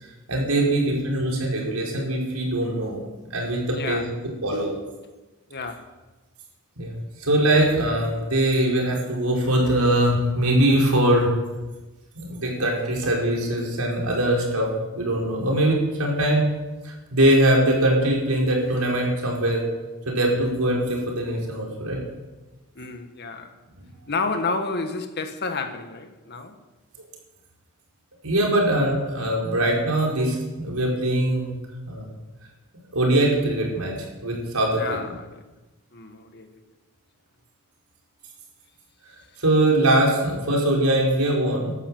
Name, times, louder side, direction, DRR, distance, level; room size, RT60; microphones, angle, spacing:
voice 1, 0.3-3.0 3.3-4.0 4.4-4.7 6.8-11.3 12.1-14.7 14.9-16.5 16.8-19.6 20.0-22.0 28.2-31.6 31.9-32.0 32.9-33.9 34.2-34.8 39.4-41.8, right 1 dB, 80° right, 5.1 m, -22 dB
voice 2, 3.7-4.1 5.5-5.9 22.7-23.5 24.1-26.5 34.8-35.4 35.9-36.6, left 3 dB, 50° left, 1.6 m, -30 dB
15.0 x 12.5 x 7.9 m
head